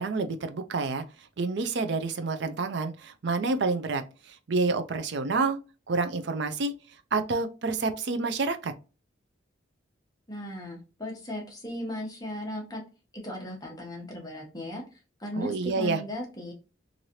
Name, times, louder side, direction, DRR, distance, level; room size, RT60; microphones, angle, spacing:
voice 1, 0.0-5.6 5.9-6.7 7.1-8.7 15.3-16.0, right 3 dB, 60° right, 0.5 m, -28 dB
voice 2, 10.3-12.8 13.1-16.5, left 1 dB, 20° left, 0.9 m, -37 dB
3.1 x 2.6 x 2.7 m
head